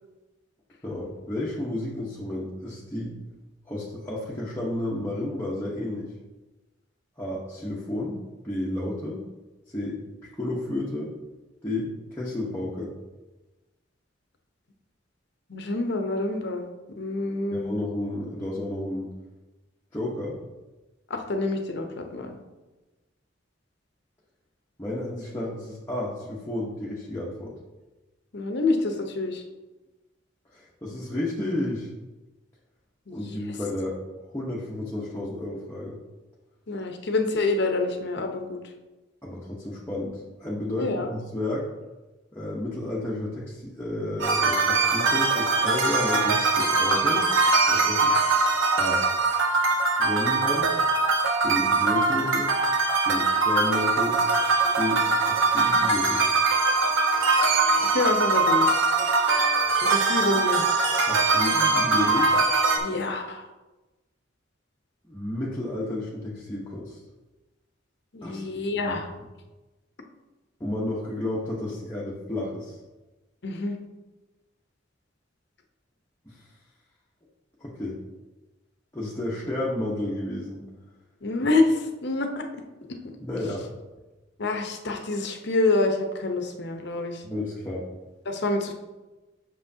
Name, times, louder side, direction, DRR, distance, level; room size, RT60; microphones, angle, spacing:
voice 1, 0.8-3.2 3.7-6.1 7.2-8.2 8.4-9.2 9.7-11.1 11.6-12.9 17.5-19.1 19.9-20.4 24.8-27.5 30.5-31.9 33.1-34.0 34.2-36.0 39.2-41.7 42.3-47.2 47.7-48.2 48.7-49.0 50.0-50.8 51.4-52.5 53.0-54.2 54.8-56.2 61.1-62.3 65.0-67.0 68.2-68.4 68.8-69.0 70.6-72.8 76.3-76.5 77.6-78.0 78.9-80.6 83.2-83.6 87.2-87.8, left 1 dB, 15° left, -7 dB, 1.0 m, -31 dB
voice 2, 15.5-16.7 17.0-17.8 21.1-22.3 28.3-29.4 33.1-33.4 36.7-38.6 40.8-41.1 57.7-58.7 59.7-60.7 62.8-63.5 68.1-69.1 73.4-73.8 81.2-82.4 84.4-87.2 88.3-88.7, left 2 dB, 60° left, 4 dB, 0.9 m, -27 dB
sound 1, 44.2-62.8, right 3 dB, 85° right, 1.0 m, -22 dB
8.1 x 6.3 x 2.8 m, 1.1 s
head